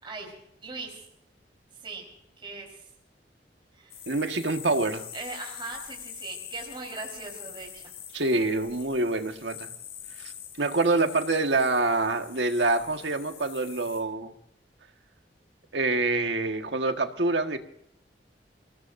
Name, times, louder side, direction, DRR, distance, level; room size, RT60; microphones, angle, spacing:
voice 1, 0.0-1.0 1.8-2.1 2.4-2.8 3.7-4.0 5.1-7.9, right 3 dB, 30° right, -1 dB, 4.3 m, -40 dB
sound 1, 3.9-14.0, left 9 dB, 60° left, 4.7 m, -44 dB
voice 2, 4.1-5.1 8.1-9.7 10.2-10.3 10.6-14.3 15.7-17.6, right 2 dB, 85° right, 6 dB, 1.6 m, -26 dB
28.0 x 19.0 x 2.7 m, 0.74 s
head